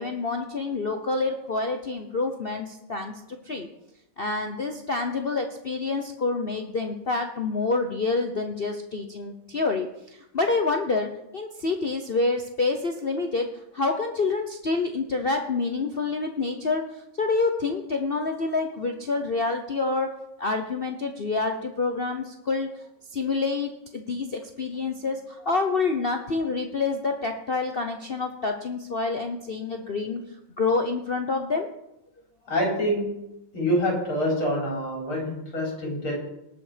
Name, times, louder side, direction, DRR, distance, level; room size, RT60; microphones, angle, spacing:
voice 1, 0.0-3.1 3.5-3.7 4.2-9.9 10.3-13.5 13.7-16.8 17.2-20.1 20.4-22.7 23.1-30.2 30.6-31.7, left 3 dB, 55° left, 4 dB, 0.6 m, -27 dB
voice 2, 32.5-33.1 33.5-36.1, equal, 85° left, -2 dB, 5.2 m, -26 dB
19.0 x 6.8 x 5.1 m, 0.83 s
omnidirectional pair, 2.2 m